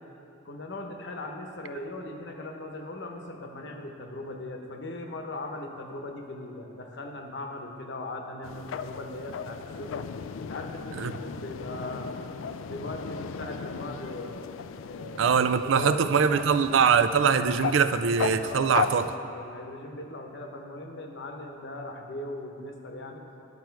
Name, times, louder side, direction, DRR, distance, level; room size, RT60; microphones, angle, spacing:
voice 1, 0.4-10.1 10.4-12.1 12.6-14.6 14.9-15.3 15.6-16.5 18.4-18.9 19.3-23.2, left 2 dB, 65° left, 3 dB, 0.9 m, -39 dB
sound 1, 8.4-19.2, left 6 dB, 85° left, 0.4 m, -36 dB
voice 2, 15.2-19.0, right 6 dB, 75° right, 11 dB, 0.4 m, -22 dB
11.0 x 7.5 x 4.6 m, 2.8 s
head